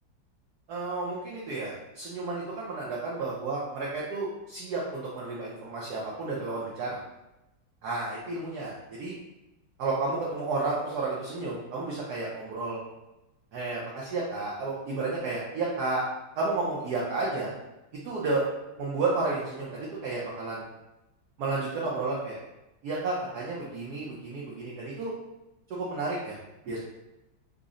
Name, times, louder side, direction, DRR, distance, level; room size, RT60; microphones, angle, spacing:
voice 1, 0.7-7.0 7.8-9.1 9.8-12.8 13.5-16.0 16.4-17.5 18.0-18.5 18.8-20.6 21.4-22.4 22.8-25.1 25.7-26.4 26.7-26.8, right 3 dB, 70° right, -5 dB, 1.0 m, -31 dB
3.9 x 2.0 x 3.6 m, 0.96 s
omnidirectional pair, 2.3 m